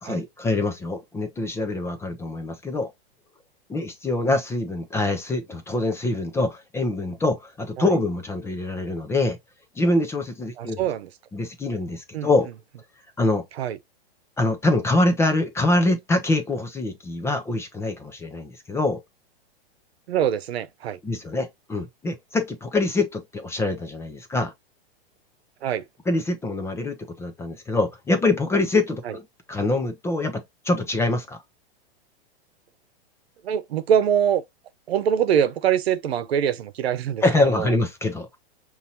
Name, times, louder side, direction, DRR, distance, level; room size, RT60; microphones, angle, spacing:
voice 1, 0.0-2.9 3.7-9.4 9.8-10.8 11.3-12.5 13.2-13.4 14.4-19.0 21.0-24.5 26.1-31.4 37.2-38.4, left 2 dB, 10° left, 0.5 m, -24 dB
voice 2, 10.6-11.1 12.1-12.3 13.6-13.8 20.1-21.0 25.6-25.8 29.1-29.2 33.4-34.4 34.9-37.2 37.5-37.7, right 9 dB, 75° right, 0.9 m, -23 dB
5.5 x 2.8 x 2.8 m
hypercardioid pair, 135°, 31 cm